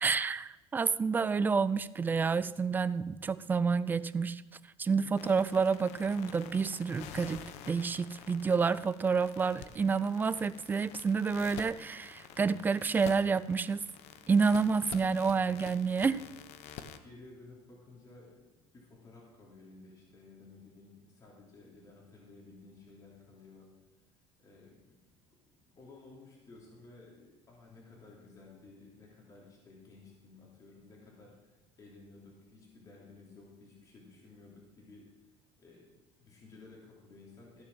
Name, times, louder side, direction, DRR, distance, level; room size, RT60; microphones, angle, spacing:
voice 1, 0.0-4.4 4.8-7.4 7.7-13.8 14.3-16.3, right 5 dB, 15° right, 16 dB, 0.3 m, -29 dB
sound 1, 5.2-17.0, left 9 dB, 70° left, 0.9 m, -49 dB
voice 2, 14.9-15.3 17.0-23.7 24.4-25.1 25.6-35.1 35.6-37.6, left 3 dB, 30° left, -3 dB, 3.2 m, -55 dB
14.5 x 7.0 x 6.2 m, 1.1 s
cardioid pair, 155°, 12 cm